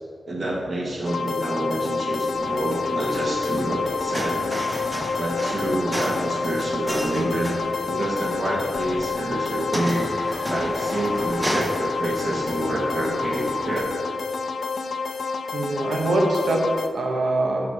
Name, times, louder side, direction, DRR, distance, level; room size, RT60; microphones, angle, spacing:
voice 1, 0.3-4.4 5.1-7.6 7.9-10.0 10.4-14.0, right 1 dB, 45° right, -2 dB, 1.5 m, -27 dB
sound 1, 1.1-16.9, left 4 dB, 75° left, 0.5 m, -28 dB
sound 2, 2.3-13.8, equal, 10° right, 0.7 m, -33 dB
voice 2, 15.5-17.7, right 2 dB, 85° right, 1 dB, 1.3 m, -23 dB
11.5 x 4.8 x 4.9 m, 2.2 s
wide cardioid pair, 170°, 0 cm